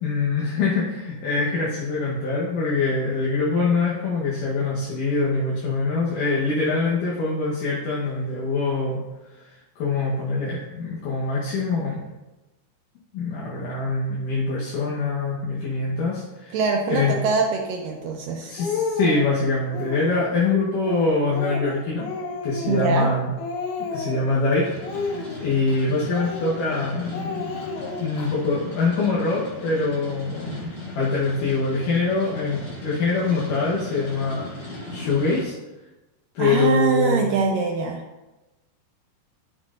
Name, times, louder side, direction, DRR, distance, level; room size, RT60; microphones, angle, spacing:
voice 1, 0.0-9.0 9.3-12.1 13.1-16.6 16.9-17.1 18.5-22.1 22.4-23.3 23.9-27.6 28.0-35.5 36.3-37.2, left 3 dB, 65° left, -6 dB, 2.3 m, -24 dB
voice 2, 16.5-18.5 22.7-23.1 36.4-38.0, right 4 dB, 85° right, 2 dB, 2.0 m, -23 dB
Speech, 17.0-17.3 18.0-18.1 18.4-19.3 19.7-20.3 20.8-23.1 23.4-24.3 24.8-25.8 26.1-26.8 27.1-28.3, left 4 dB, 85° left, 3.2 m, -31 dB
sound 1, 24.6-35.4, left 2 dB, 50° left, 1.5 m, -38 dB
12.5 x 6.2 x 2.5 m, 1.1 s
omnidirectional pair, 4.7 m